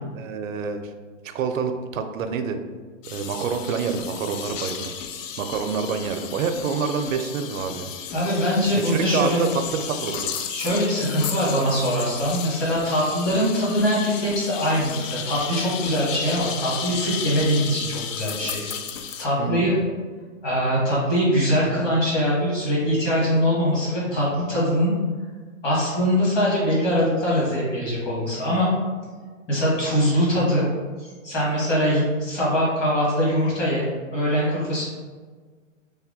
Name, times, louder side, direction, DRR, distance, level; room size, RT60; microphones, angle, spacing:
voice 1, 0.1-0.8 1.2-2.6 3.1-4.9 5.4-7.9 8.8-10.3 19.4-19.7, right 6 dB, 80° right, 7 dB, 0.5 m, -27 dB
sound 1, 3.0-19.3, left 7 dB, 70° left, 0.5 m, -34 dB
voice 2, 8.1-9.4 10.5-18.6 19.2-19.8 20.4-24.9 25.6-28.7 29.5-30.7 31.0-34.9, equal, 25° left, -6 dB, 1.2 m, -22 dB
3.3 x 2.2 x 3.6 m, 1.5 s
hypercardioid pair, 145°, 40 cm